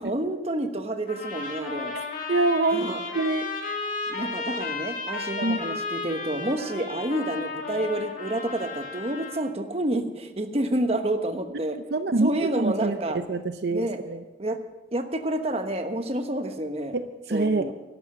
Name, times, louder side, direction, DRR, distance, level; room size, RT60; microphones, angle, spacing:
voice 1, 0.0-1.9 2.7-3.0 4.1-11.8 12.2-13.2 13.7-14.0 14.4-14.6 14.9-17.0 17.3-17.7, right 1 dB, 35° right, 7 dB, 1.2 m, -29 dB
sound 1, 1.1-9.4, left 4 dB, 50° left, 2.6 m, -34 dB
voice 2, 2.3-2.8 3.1-3.5 5.4-5.6 11.9-13.0 13.3-14.2 16.9-17.7, right 2 dB, 70° right, 9 dB, 0.6 m, -25 dB
12.5 x 12.0 x 6.7 m, 1.1 s
head